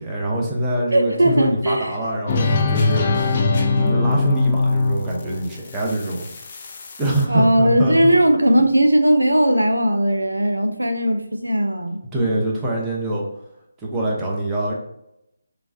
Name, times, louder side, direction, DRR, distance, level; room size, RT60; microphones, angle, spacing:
voice 1, 0.0-3.4 3.7-6.3 7.0-8.1 12.1-13.2 13.8-14.7, right 1 dB, 15° right, -4 dB, 0.6 m, -24 dB
voice 2, 0.9-1.9 7.3-12.0, right 1 dB, 85° right, 6 dB, 0.4 m, -18 dB
sound 1, 2.3-7.2, left 3 dB, 35° left, 0.4 m, -21 dB
3.1 x 2.3 x 2.6 m, 0.82 s
figure-of-eight pair, 150°, 0 cm